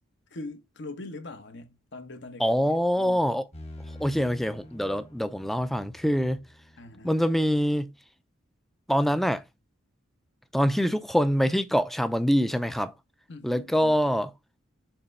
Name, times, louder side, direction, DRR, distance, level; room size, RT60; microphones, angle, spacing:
voice 1, 0.3-3.3 6.8-7.2 13.3-14.0, left 2 dB, 60° left, 1.1 m, -42 dB
voice 2, 2.4-3.4 4.0-6.4 7.0-7.9 8.9-9.4 10.5-12.9 13.4-14.3, equal, ahead, 0.4 m, -24 dB
sound 1, 3.5-7.3, left 1 dB, 30° left, 1.5 m, -47 dB
7.0 x 3.3 x 5.3 m
head